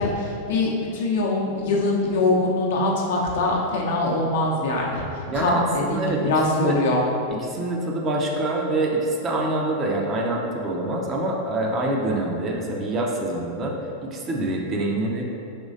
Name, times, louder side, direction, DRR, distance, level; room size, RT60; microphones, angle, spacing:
voice 1, 0.0-5.1 5.3-7.0, left 2 dB, 55° left, -3 dB, 0.6 m, -23 dB
voice 2, 5.3-6.3 6.6-6.8 7.3-13.7 14.0-15.2, right 2 dB, 25° right, -1 dB, 0.5 m, -25 dB
5.1 x 3.1 x 2.6 m, 2.6 s
figure-of-eight pair, 90°, 0 cm